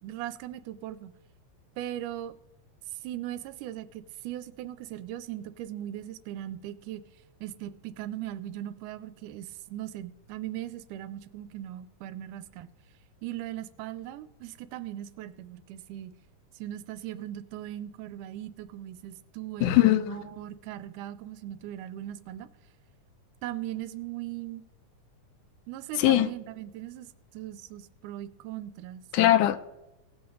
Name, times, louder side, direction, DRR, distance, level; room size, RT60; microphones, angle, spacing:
voice 1, 0.0-1.1 1.8-2.3 2.9-7.0 7.4-12.7 13.2-16.1 16.5-22.5 23.4-24.6 25.7-27.1 27.3-29.0, right 12 dB, 85° right, 2.1 m, -39 dB
voice 2, 19.6-20.2 26.0-26.3 29.1-29.6, left 14 dB, 85° left, 2.1 m, -21 dB
18.0 x 6.9 x 3.9 m
omnidirectional pair, 3.6 m